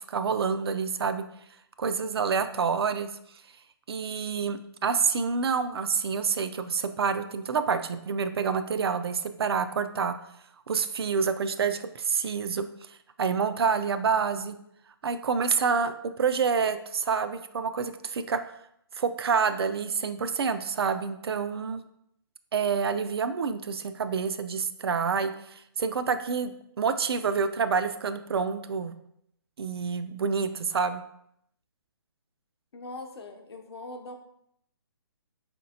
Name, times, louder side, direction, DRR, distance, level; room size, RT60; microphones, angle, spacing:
voice 1, 0.1-1.2 1.8-3.1 3.9-10.2 10.7-12.7 13.2-14.6 15.0-18.4 18.9-21.8 22.5-26.5 26.8-28.9 29.6-31.0, right 5 dB, 70° right, 10 dB, 0.4 m, -27 dB
voice 2, 32.7-34.2, left 2 dB, 80° left, 3 dB, 0.7 m, -41 dB
4.3 x 3.2 x 2.7 m, 0.74 s
hypercardioid pair, 165°, 13 cm